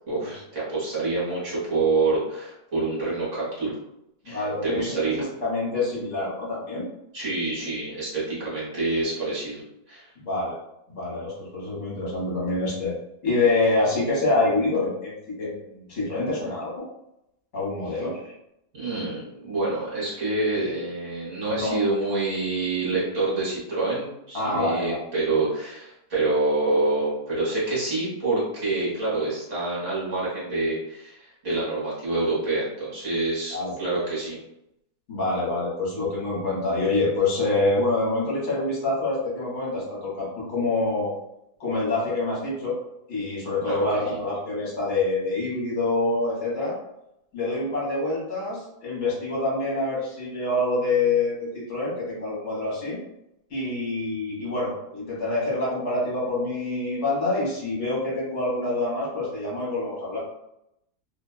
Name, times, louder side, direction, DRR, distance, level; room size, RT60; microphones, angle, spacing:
voice 1, 0.1-3.7 4.2-5.2 7.1-9.6 9.9-10.0 18.7-34.4 43.7-44.2, right 3 dB, 50° right, -7 dB, 1.3 m, -27 dB
voice 2, 4.2-4.9 5.4-6.8 10.2-10.6 10.9-12.9 13.2-16.9 17.5-18.2 21.5-21.8 24.3-24.9 33.5-33.8 35.1-41.1 41.6-42.8 43.1-46.7 47.3-53.0 53.5-60.2, left 2 dB, 50° left, -6 dB, 1.3 m, -26 dB
2.8 x 2.3 x 2.2 m, 0.82 s
omnidirectional pair, 1.7 m